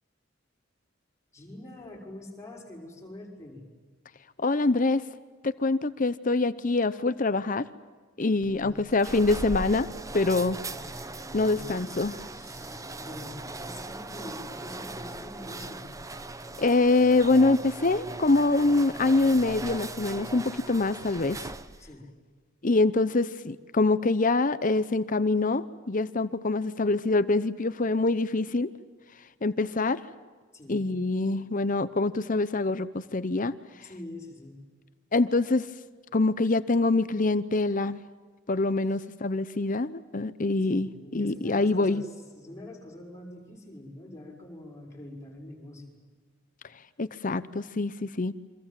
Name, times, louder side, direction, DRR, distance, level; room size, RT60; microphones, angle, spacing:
voice 1, 1.3-3.6 8.4-8.8 11.4-12.0 12.3-15.9 21.8-22.1 30.5-30.9 33.8-34.6 38.9-39.1 40.6-46.0, left 1 dB, 15° left, -1 dB, 6.3 m, -45 dB
voice 2, 4.4-5.0 5.4-7.7 8.2-9.9 10.1-10.6 11.3-12.2 16.6-21.4 22.6-28.7 29.4-30.0 30.7-33.5 35.1-35.7 36.1-38.0 38.5-42.0 47.0-48.3, left 3 dB, 40° left, 14 dB, 0.8 m, -25 dB
sound 1, 8.4-21.9, right 2 dB, 15° right, 0.9 m, -39 dB
29.0 x 25.0 x 7.6 m, 1.5 s
head